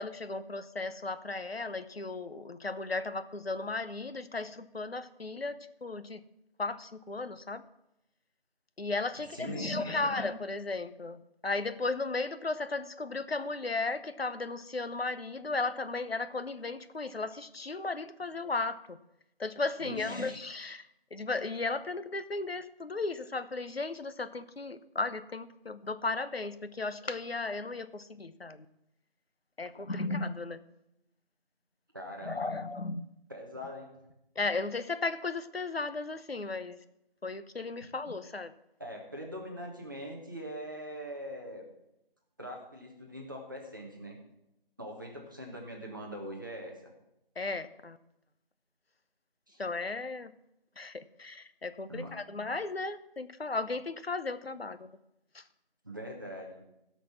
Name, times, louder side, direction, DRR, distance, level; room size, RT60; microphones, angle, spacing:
voice 1, 0.0-6.2 6.6-7.6 8.8-19.0 19.4-28.7 29.6-30.6 32.2-33.1 34.4-36.8 37.2-38.5 47.4-48.0 49.6-50.3 50.8-54.9 55.3-55.4, left 3 dB, 80° left, 12 dB, 0.9 m, -35 dB
voice 2, 9.3-10.0 19.8-20.4 31.9-32.6 33.3-33.9 38.8-41.7 42.4-44.2 44.8-46.9 49.5-49.6 51.9-52.2 55.8-56.7, equal, 20° right, -1 dB, 1.2 m, -42 dB
16.0 x 5.9 x 6.0 m, 0.85 s
figure-of-eight pair, 170°, 30 cm